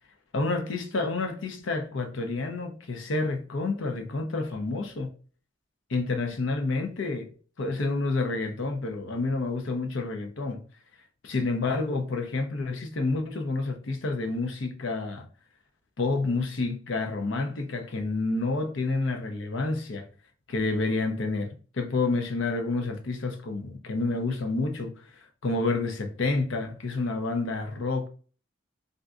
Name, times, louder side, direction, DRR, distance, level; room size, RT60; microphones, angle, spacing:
voice 1, 0.3-5.1 5.9-7.3 7.6-10.6 11.2-15.3 16.0-20.1 20.5-28.1, left 3 dB, 75° left, 0.6 m, -29 dB
3.5 x 2.6 x 2.4 m
head